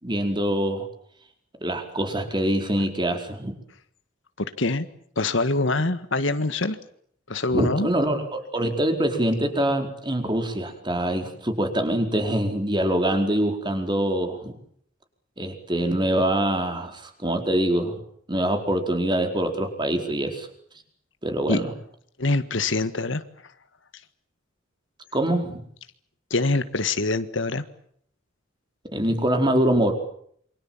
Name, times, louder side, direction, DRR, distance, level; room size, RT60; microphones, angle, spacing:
voice 1, 0.0-0.9 1.6-3.5 7.5-14.5 15.4-17.9 18.3-20.5 21.2-21.7 25.1-25.6 28.9-29.9, right 1 dB, 25° right, 5 dB, 4.6 m, -24 dB
voice 2, 4.4-4.9 5.2-6.8 7.3-7.9 21.5-21.6 22.2-23.2 26.3-27.6, left 2 dB, 65° left, 11 dB, 1.7 m, -24 dB
28.0 x 25.5 x 7.4 m, 0.65 s
head